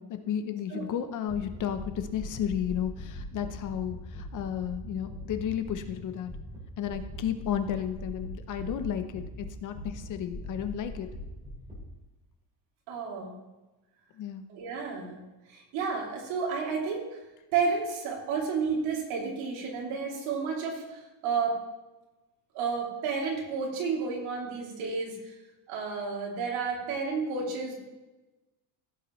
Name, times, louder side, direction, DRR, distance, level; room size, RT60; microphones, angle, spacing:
voice 1, 0.0-6.3 6.8-11.1 14.1-14.4, left 9 dB, 40° left, 9 dB, 0.7 m, -33 dB
sound 1, 1.3-6.0 6.2-6.6 6.9-9.4 9.7-11.8, left 1 dB, 15° right, 3.9 m, -41 dB
voice 2, 12.9-13.4 14.5-15.2 15.5-17.0 17.5-21.6 22.5-25.3 25.7-27.7, right 5 dB, 90° right, -1 dB, 2.9 m, -31 dB
16.0 x 7.3 x 3.1 m, 1.1 s
cardioid pair, 175°, 47 cm